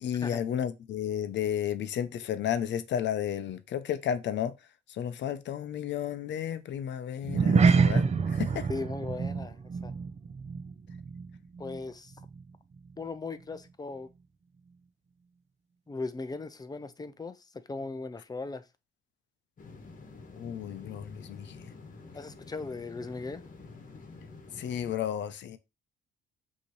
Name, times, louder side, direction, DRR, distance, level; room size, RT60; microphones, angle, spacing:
voice 1, 0.0-4.5 5.0-8.1 8.3-8.7 20.4-21.6 24.6-25.6, left 9 dB, 65° left, 0.6 m, -32 dB
sound 1, 7.2-11.9 12.1-12.4 12.9-13.0, right 5 dB, 35° right, 0.6 m, -27 dB
voice 2, 8.7-9.9 11.6-12.1 13.0-14.1 15.9-18.6 22.1-23.4, left 3 dB, 20° left, 0.5 m, -38 dB
sound 2, 19.6-24.9, left 3 dB, 45° left, 1.3 m, -48 dB
5.5 x 2.8 x 3.1 m
cardioid pair, 90°, 20 cm